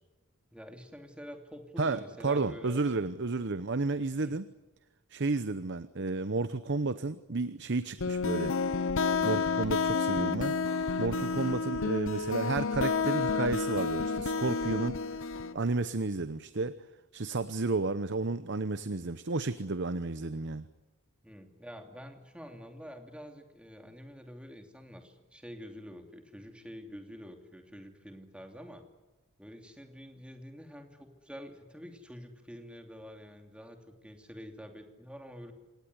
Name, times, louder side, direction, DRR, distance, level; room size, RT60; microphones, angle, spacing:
voice 1, 0.5-2.8 4.2-4.4 21.2-28.8 29.4-35.5, equal, 5° right, 4 dB, 2.8 m, -47 dB
voice 2, 1.8-4.5 5.1-8.5 9.2-10.5 11.0-15.0 15.5-16.7 17.1-20.7, right 3 dB, 55° right, 13 dB, 0.9 m, -32 dB
sound 1, 8.0-15.5, left 4 dB, 60° left, 0.9 m, -30 dB
26.5 x 19.0 x 9.7 m, 1.1 s
head